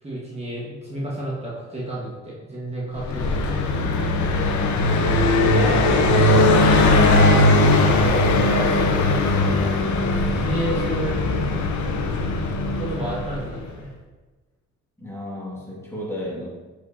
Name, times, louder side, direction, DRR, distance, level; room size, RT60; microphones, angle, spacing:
voice 1, 0.0-3.7 5.3-7.4 7.8-9.7 9.9-11.2 12.7-13.9, right 1 dB, 20° right, -6 dB, 1.5 m, -30 dB
Car passing by, 3.0-13.6, left 2 dB, 70° left, 0.8 m, -19 dB
voice 2, 4.5-5.6 15.0-16.5, left 1 dB, 10° left, -5 dB, 1.9 m, -34 dB
7.3 x 4.9 x 2.8 m, 1.2 s
cardioid pair, 90°, 30 cm